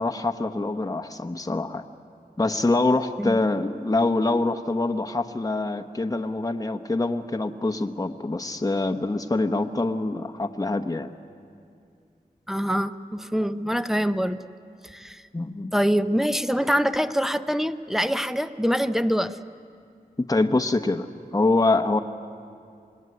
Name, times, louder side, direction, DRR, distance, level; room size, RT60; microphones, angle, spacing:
voice 1, 0.0-1.8 2.4-11.1 15.3-15.7 20.2-22.0, left 2 dB, 25° left, 6 dB, 1.0 m, -25 dB
voice 2, 12.5-14.4 14.8-15.2 15.7-19.4, equal, ahead, 10 dB, 0.8 m, -24 dB
26.5 x 20.5 x 9.6 m, 2.4 s
wide cardioid pair, 70°, 16 cm